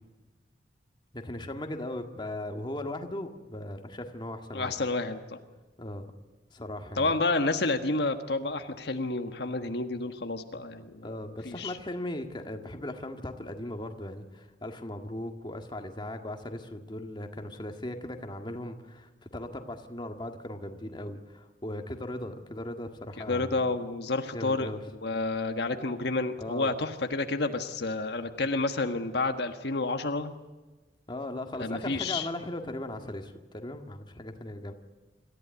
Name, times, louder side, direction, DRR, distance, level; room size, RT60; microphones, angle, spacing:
voice 1, 1.1-4.7 5.8-6.1 6.5-7.1 11.0-23.6 24.3-24.8 26.4-26.7 31.1-34.7, left 1 dB, 25° left, 5 dB, 1.9 m, -38 dB
voice 2, 4.5-5.4 7.0-11.1 11.4-11.8 23.3-24.7 25.0-30.3 31.6-32.3, left 3 dB, 65° left, 6 dB, 1.5 m, -30 dB
26.5 x 14.5 x 9.4 m, 1.2 s
head